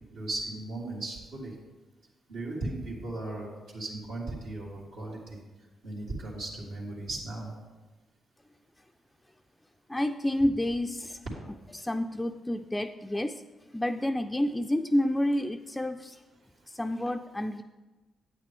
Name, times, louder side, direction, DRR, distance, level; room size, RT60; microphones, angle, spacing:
voice 1, 0.1-1.5 2.3-3.5 3.7-5.4 5.8-7.5, right 2 dB, 85° right, -8 dB, 2.2 m, -36 dB
voice 2, 9.9-11.2 11.7-13.4 13.7-16.2 16.7-17.6, left 1 dB, 15° left, 6 dB, 0.4 m, -29 dB
8.8 x 8.5 x 3.5 m, 1.2 s
hypercardioid pair, 45°, 0 cm